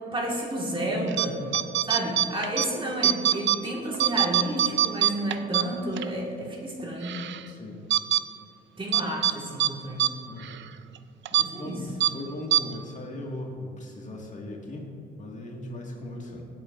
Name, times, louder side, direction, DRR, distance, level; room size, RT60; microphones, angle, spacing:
voice 1, 0.1-1.4 1.8-7.2 8.8-10.3 11.3-11.8, right 1 dB, 25° right, -1 dB, 1.8 m, -31 dB
sound 1, 1.1-1.3 1.5-2.7 3.0-3.6 3.9-6.1 6.5-6.6 7.0-7.4 7.9-8.2 8.9-9.3 9.6-9.7 10.0-10.1 10.4-10.6 11.3-11.5 12.0-12.1 12.5-12.6, right 12 dB, 70° right, 0.5 m, -23 dB
voice 2, 7.5-7.8 10.3-10.6 11.6-14.9 15.2-16.4, left 1 dB, 40° left, -1 dB, 1.9 m, -38 dB
16.5 x 8.4 x 2.6 m, 2.8 s
cardioid pair, 90°, 20 cm